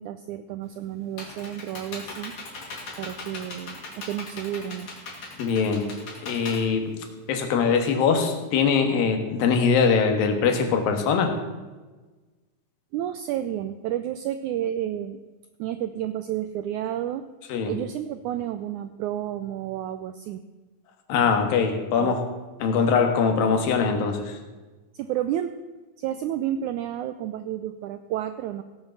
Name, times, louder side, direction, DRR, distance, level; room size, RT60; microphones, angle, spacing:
voice 1, 0.0-2.3 3.0-4.9 12.9-15.2 15.6-17.3 17.7-20.4 22.0-22.2 24.9-25.5 26.0-28.6, right 11 dB, 90° right, 11 dB, 1.7 m, -31 dB
Computer keyboard, 0.6-7.5, left 3 dB, 55° left, 3.8 m, -39 dB
voice 2, 5.4-5.9 6.2-6.9 7.3-11.4 17.5-17.7 21.1-22.2 22.6-24.4, left 5 dB, 80° left, 5 dB, 3.2 m, -22 dB
17.0 x 7.8 x 7.0 m, 1.3 s
omnidirectional pair, 4.1 m